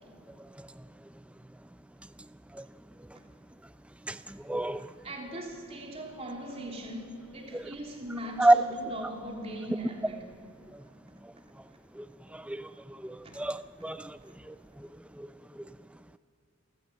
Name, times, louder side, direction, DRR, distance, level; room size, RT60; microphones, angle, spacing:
voice 1, 4.1-4.9 7.5-7.6 8.4-8.6 12.0-12.1 12.3-12.6 13.0-14.2 14.5-14.6 15.2-15.3, right 2 dB, 5° right, 0.4 m, -27 dB
voice 2, 4.7-10.3 13.2-13.4, right 1 dB, 30° right, 3.4 m, -40 dB
28.0 x 15.0 x 7.6 m
head